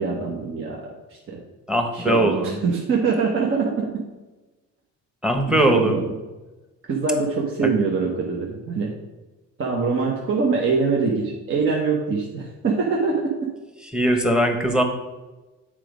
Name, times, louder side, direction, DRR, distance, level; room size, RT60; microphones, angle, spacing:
voice 1, 0.0-1.4 1.9-4.0 5.5-6.0 6.9-8.9 9.6-13.5, right 4 dB, 45° right, -1 dB, 1.2 m, -24 dB
voice 2, 1.7-2.6 5.2-6.0 7.6-7.7 13.8-14.8, right 1 dB, 5° right, 5 dB, 1.2 m, -20 dB
7.5 x 5.0 x 5.1 m, 1.2 s
cardioid pair, 105°, 29 cm